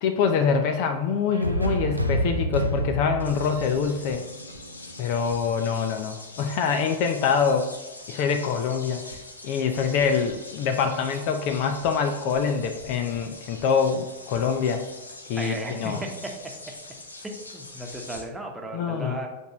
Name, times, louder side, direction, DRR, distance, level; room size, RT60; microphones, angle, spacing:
voice 1, 0.0-4.2 5.0-7.7 8.1-9.0 9.4-14.8 15.3-16.0 18.7-19.2, left 6 dB, 45° left, 6 dB, 0.6 m, -25 dB
sound 1, 1.3-5.2, right 1 dB, 85° right, 0.6 m, -29 dB
sound 2, 3.2-18.2, left 2 dB, 80° left, 0.9 m, -43 dB
voice 2, 15.3-16.3 17.2-19.3, right 1 dB, 10° right, 1 dB, 1.2 m, -35 dB
8.1 x 4.5 x 3.0 m, 1.2 s
figure-of-eight pair, 90°, 0 cm